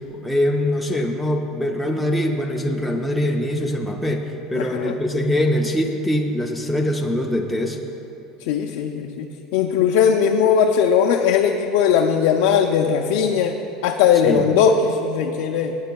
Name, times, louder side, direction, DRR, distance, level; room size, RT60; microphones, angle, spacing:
voice 1, 0.1-7.8 14.2-14.4, left 1 dB, ahead, -1 dB, 0.4 m, -23 dB
voice 2, 4.5-5.0 8.4-13.6 13.8-15.8, left 7 dB, 75° left, 2 dB, 0.4 m, -19 dB
17.0 x 9.0 x 2.3 m, 2.9 s
cardioid pair, 165°, 0 cm